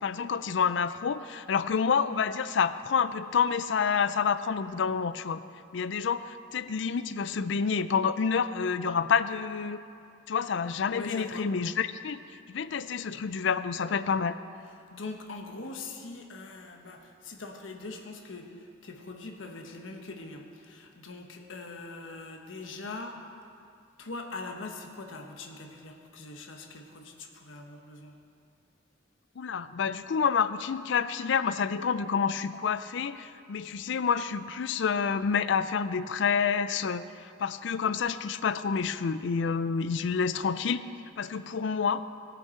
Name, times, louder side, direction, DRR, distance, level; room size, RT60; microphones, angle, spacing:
voice 1, 0.0-5.4 5.7-9.8 10.3-12.2 12.5-14.4 29.4-40.9 41.2-42.0, left 6 dB, 65° left, 13 dB, 0.4 m, -28 dB
voice 2, 10.9-11.5 14.9-23.2 24.0-28.1, left 3 dB, 80° left, 3 dB, 1.2 m, -42 dB
19.0 x 6.9 x 4.5 m, 2.5 s
head